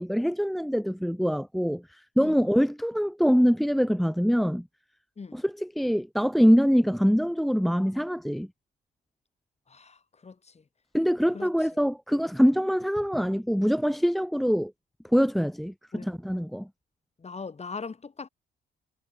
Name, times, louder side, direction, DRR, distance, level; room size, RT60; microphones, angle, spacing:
voice 1, 0.0-4.7 5.3-8.5 10.9-14.7 15.1-16.7, equal, ahead, 1.2 m, -24 dB
voice 2, 2.2-2.5 5.2-5.4 9.7-10.6 11.3-11.5 15.9-16.1 17.2-18.3, left 4 dB, 35° left, 7.3 m, -40 dB
cardioid pair, 90°, 20 cm